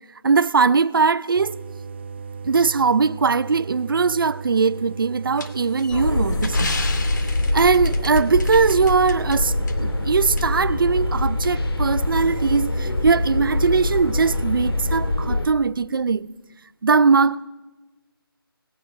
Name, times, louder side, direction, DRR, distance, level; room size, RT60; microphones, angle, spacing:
voice 1, 0.2-1.6 2.4-6.8 7.5-16.3 16.8-17.5, right 5 dB, 60° right, 0.7 m, -20 dB
sound 1, 1.3-15.3, right 5 dB, 30° right, 0.5 m, -36 dB
sound 2, 5.4-9.4 9.7-9.8 10.4-10.5, left 3 dB, 50° left, 2.4 m, -34 dB
sound 3, 5.9-15.5, left 2 dB, 80° left, 2.0 m, -24 dB
20.0 x 19.0 x 7.1 m
figure-of-eight pair, 165°, 13 cm